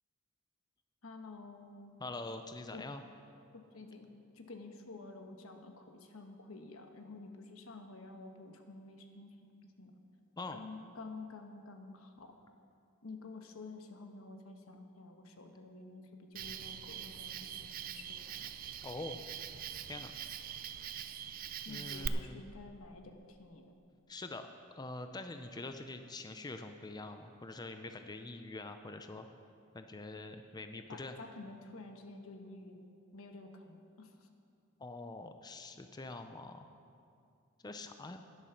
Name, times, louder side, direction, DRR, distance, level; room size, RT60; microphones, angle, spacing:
voice 1, 1.0-1.9 2.7-2.9 3.5-4.1 4.3-9.3 9.6-10.0 10.5-12.3 13.0-18.5 21.6-23.7 30.9-34.3, left 3 dB, 90° left, 5 dB, 1.2 m, -50 dB
voice 2, 2.0-3.0 10.4-10.6 18.8-19.2 19.9-20.1 21.7-22.4 24.1-24.5 24.7-29.3 29.7-31.1 34.8-36.7 37.6-38.2, left 2 dB, 20° left, 7 dB, 0.5 m, -44 dB
Cricket, 16.4-22.1, right 9 dB, 45° right, 0.4 m, -43 dB
11.0 x 10.5 x 5.8 m, 2.4 s
head